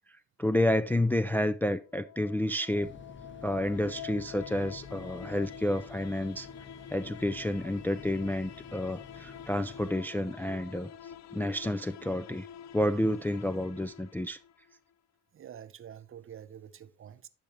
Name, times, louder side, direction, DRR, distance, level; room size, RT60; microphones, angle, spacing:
voice 1, 0.4-2.9 3.4-6.5 6.9-10.9 11.3-12.5 12.7-14.4, left 1 dB, 5° left, 0.3 m, -30 dB
sound 1, 1.8-14.8, left 8 dB, 65° left, 0.6 m, -47 dB
sound 2, 2.8-9.9, left 5 dB, 40° left, 1.2 m, -50 dB
voice 2, 15.3-17.3, right 9 dB, 45° right, 0.7 m, -47 dB
10.5 x 5.7 x 3.2 m
cardioid pair, 90°, 30 cm